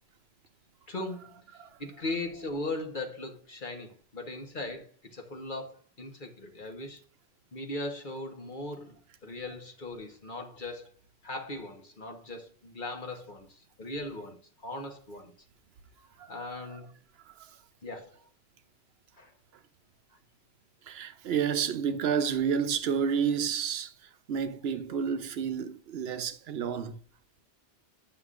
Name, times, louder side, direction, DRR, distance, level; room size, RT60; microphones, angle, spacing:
voice 1, 0.9-1.4 1.8-7.0 7.5-9.0 9.2-10.9 11.2-13.5 13.8-15.3 16.3-16.9 17.8-18.2 19.2-19.3 24.9-25.0, left 2 dB, 50° left, 1.2 m, -38 dB
voice 2, 20.9-23.9 24.3-27.0, right 7 dB, 75° right, 0.9 m, -30 dB
9.6 x 5.8 x 2.5 m
omnidirectional pair, 1.1 m